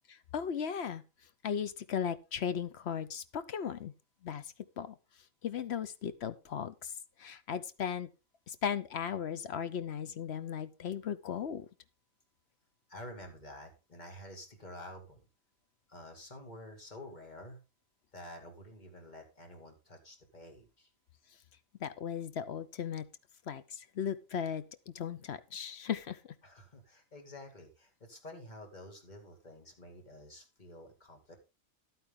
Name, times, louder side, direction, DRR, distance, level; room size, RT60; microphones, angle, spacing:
voice 1, 0.3-1.0 1.4-3.9 4.2-4.4 4.8-4.9 5.4-6.9 7.2-8.1 8.5-11.7 21.8-23.1 23.5-26.2, left 8 dB, 60° left, 13 dB, 1.0 m, -36 dB
voice 2, 12.9-15.3 15.9-17.6 18.1-20.9 26.4-31.4, left 1 dB, 35° left, 4 dB, 2.5 m, -49 dB
11.5 x 9.1 x 3.7 m, 0.27 s
omnidirectional pair, 1.4 m